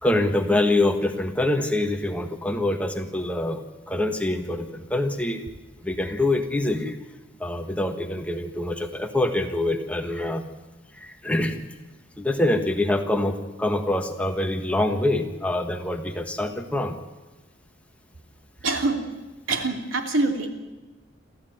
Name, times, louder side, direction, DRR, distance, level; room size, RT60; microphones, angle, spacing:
voice 1, 0.0-5.5 5.8-7.0 7.4-10.4 10.9-11.7 12.2-17.0 18.7-18.8, left 1 dB, 5° left, 5 dB, 1.5 m, -25 dB
voice 2, 18.6-19.0 19.5-20.5, right 3 dB, 85° right, 4 dB, 3.0 m, -24 dB
27.5 x 14.5 x 9.4 m, 1.1 s
head